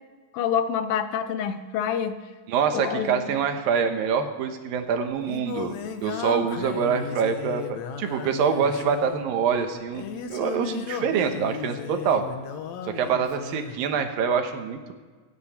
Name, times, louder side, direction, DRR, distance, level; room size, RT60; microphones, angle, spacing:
voice 1, 0.3-2.2 2.7-3.3, left 8 dB, 85° left, 10 dB, 2.7 m, -27 dB
voice 2, 2.5-10.0 10.3-12.3 12.8-14.9, right 6 dB, 80° right, 6 dB, 2.9 m, -25 dB
Singing, 4.7-13.8, left 6 dB, 65° left, 1.9 m, -35 dB
25.5 x 10.0 x 4.3 m, 1.5 s
omnidirectional pair, 4.0 m